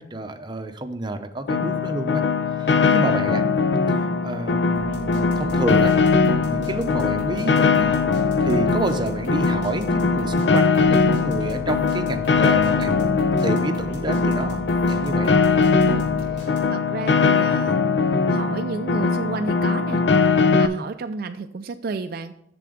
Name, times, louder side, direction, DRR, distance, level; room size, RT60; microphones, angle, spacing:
voice 1, 0.0-2.2 2.6-3.4 4.2-7.9 8.4-15.4, right 2 dB, 25° right, 6 dB, 0.7 m, -29 dB
Piano, 1.5-20.7, left 4 dB, 70° left, 0.5 m, -20 dB
voice 2, 2.8-3.1 15.8-17.8 18.3-20.0 20.5-22.3, right 4 dB, 55° right, 8 dB, 0.4 m, -32 dB
sound 1, 4.7-16.9, equal, 90° left, 2.8 m, -37 dB
7.5 x 6.8 x 5.0 m, 0.80 s
head